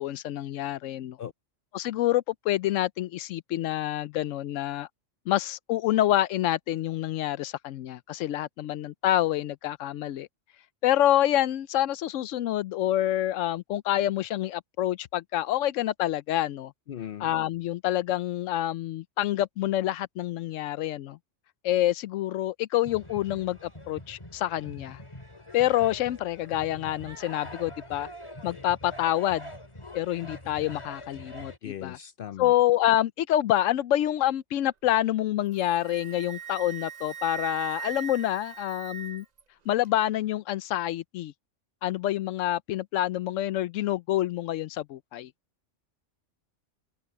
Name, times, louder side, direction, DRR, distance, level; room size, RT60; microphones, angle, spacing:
voice 1, 0.0-1.2 1.7-4.9 5.3-10.3 10.8-16.7 17.2-21.2 21.6-25.0 25.5-28.1 28.4-29.5 29.9-32.0 32.4-39.2 39.7-41.3 41.8-45.3, left 13 dB, 90° left, 0.9 m, -27 dB
voice 2, 16.9-17.3 31.6-32.5, left 10 dB, 60° left, 0.6 m, -38 dB
sound 1, 22.8-31.6, left 1 dB, 25° left, 2.3 m, -44 dB
Wind instrument woodwind instrument, 35.5-39.4, right 8 dB, 40° right, 0.8 m, -39 dB
omnidirectional pair, 1.3 m